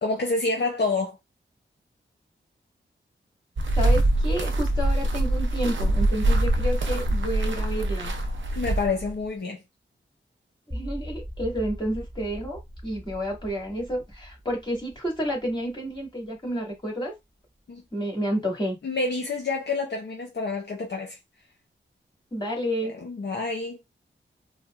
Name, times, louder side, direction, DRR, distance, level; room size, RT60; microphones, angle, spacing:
voice 1, 0.0-1.2 8.6-9.6 17.7-17.8 18.8-21.2 23.0-23.8, left 3 dB, 55° left, 0.8 m, -28 dB
sound 1, 3.6-9.1, right 1 dB, 70° right, 0.7 m, -24 dB
voice 2, 3.7-8.1 10.7-17.1 17.9-18.8 22.3-23.0, equal, 20° left, 2.0 m, -30 dB
sound 2, 10.7-16.8, equal, 10° right, 0.9 m, -40 dB
4.2 x 2.0 x 2.4 m
cardioid pair, 55°, 20 cm